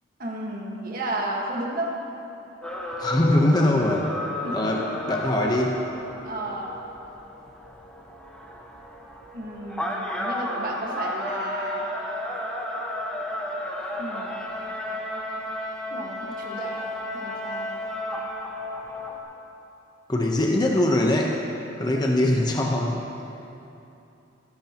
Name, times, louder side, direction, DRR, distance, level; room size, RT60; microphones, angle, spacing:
voice 1, 0.2-2.0 4.4-4.6 6.2-6.8 9.3-11.9 14.0-14.4 15.9-17.8 21.9-22.1, right 1 dB, 45° right, -2 dB, 1.6 m, -33 dB
sound 1, 2.6-19.2, left 1 dB, 5° left, 1.2 m, -33 dB
voice 2, 3.0-4.1 4.5-5.8 20.1-21.5 21.8-23.0, left 1 dB, 20° left, 0 dB, 0.9 m, -22 dB
24.0 x 11.5 x 3.0 m, 2.8 s
head